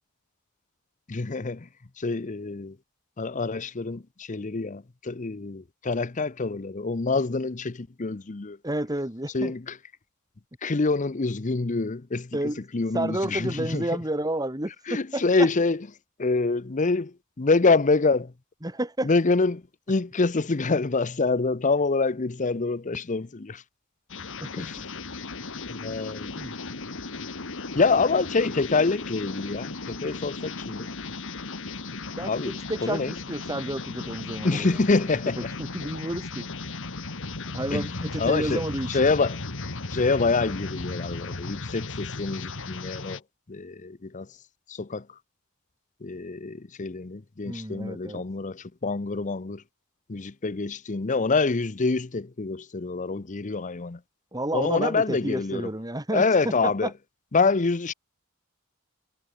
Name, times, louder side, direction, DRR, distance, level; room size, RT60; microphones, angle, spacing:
voice 1, 1.1-1.7 2.0-2.8 3.2-8.6 9.3-9.8 10.6-13.9 14.9-15.9 16.2-18.3 19.0-19.6 19.9-23.6 24.5-24.9 25.7-26.3 27.7-30.9 32.3-33.1 34.4-35.5 37.7-38.6 38.9-39.4 39.9-43.2 43.5-44.3 44.7-45.1 46.0-49.6 50.1-54.0 54.5-55.7 56.1-56.9 57.3-57.9, left 3 dB, 35° left, 0.7 m, -26 dB
voice 2, 8.6-9.5 12.3-12.6 12.9-15.5 18.6-19.1 24.4-24.7 26.4-26.6 28.1-28.2 32.2-34.8 35.4-36.5 37.5-39.1 47.4-48.2 54.3-56.2 56.6-56.9, right 1 dB, 20° right, 3.4 m, -31 dB
sound 1, 24.1-43.2, left 3 dB, 65° left, 1.8 m, -36 dB
head